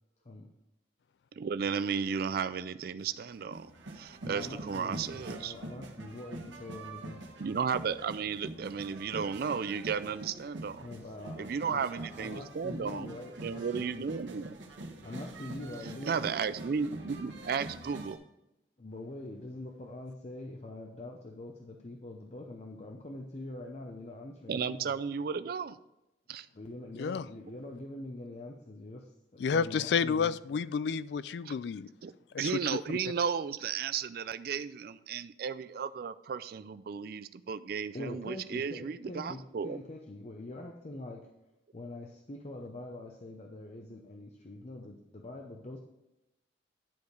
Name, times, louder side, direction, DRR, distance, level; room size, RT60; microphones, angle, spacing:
voice 1, 1.4-3.7 3.9-5.5 7.4-10.9 11.4-14.6 16.1-18.2 24.5-25.8 26.3-26.5 31.4-31.6 32.0-32.1 32.4-39.8, right 6 dB, 55° right, 13 dB, 0.4 m, -34 dB
sound 1, 3.0-18.1, right 2 dB, 85° right, 1.4 m, -45 dB
voice 2, 4.2-7.2 10.8-14.1 15.0-16.2 18.8-25.0 26.5-30.4 37.9-41.3 41.7-45.8, left 2 dB, 40° left, 2 dB, 0.7 m, -44 dB
voice 3, 29.4-31.9 32.3-32.5, left 6 dB, 65° left, 17 dB, 0.3 m, -30 dB
10.5 x 4.9 x 5.2 m, 0.92 s
head